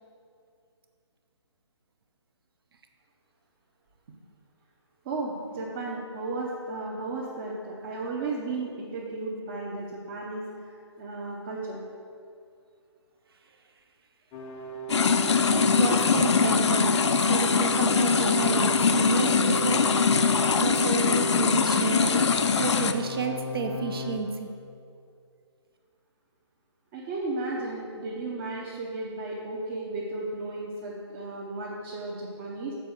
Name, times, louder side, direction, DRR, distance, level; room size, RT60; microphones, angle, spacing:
voice 1, 5.0-11.8 26.9-32.7, right 2 dB, 25° right, -4 dB, 0.8 m, -34 dB
sound 1, 14.3-24.2, right 3 dB, 15° left, 0.5 m, -34 dB
sound 2, 14.9-22.9, left 6 dB, 65° left, 0.5 m, -23 dB
voice 2, 15.5-19.9 20.6-22.3 22.6-24.5, right 5 dB, 50° right, 5 dB, 0.7 m, -31 dB
6.8 x 4.4 x 6.4 m, 2.4 s
figure-of-eight pair, 145°, 15 cm